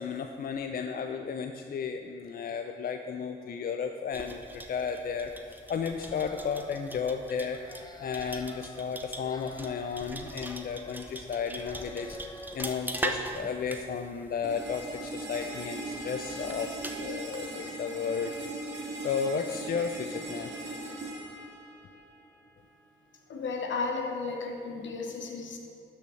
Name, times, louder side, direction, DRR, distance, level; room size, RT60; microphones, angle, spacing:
voice 1, 0.0-7.6 8.0-12.2 12.5-18.7 19.0-20.5, left 6 dB, 50° left, 6 dB, 0.4 m, -33 dB
sound 1, 4.1-17.1, right 1 dB, 10° right, 0.7 m, -41 dB
sound 2, 5.9-7.1 7.5-8.8 9.1-11.3 11.5-13.5, left 2 dB, 20° left, 0.8 m, -49 dB
sound 3, 14.4-22.4, right 1 dB, 65° right, 2.0 m, -39 dB
voice 2, 23.3-25.6, left 4 dB, 70° left, 3 dB, 1.1 m, -34 dB
12.0 x 5.6 x 3.2 m, 2.7 s
supercardioid pair, 45°, 20 cm